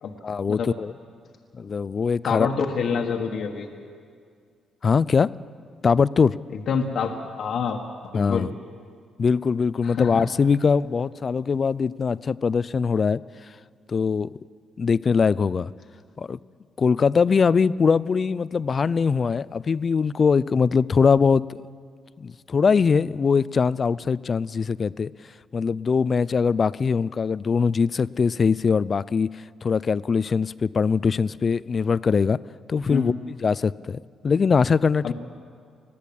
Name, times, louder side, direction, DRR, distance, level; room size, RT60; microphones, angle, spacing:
voice 1, 0.2-0.9 1.6-2.5 4.8-5.3 5.8-6.4 8.1-8.5 9.2-13.2 13.9-14.3 14.8-15.7 16.2-16.4 16.8-21.6 22.2-25.1 25.5-32.4 32.7-35.0, left 5 dB, 40° left, 19 dB, 0.4 m, -22 dB
voice 2, 2.2-3.7 6.7-7.1 7.4-7.8 8.1-8.5 9.8-10.3 32.9-33.1 35.0-35.1, left 6 dB, 65° left, 2 dB, 1.4 m, -26 dB
20.5 x 14.5 x 8.7 m, 2.1 s
cardioid pair, 90°, 0 cm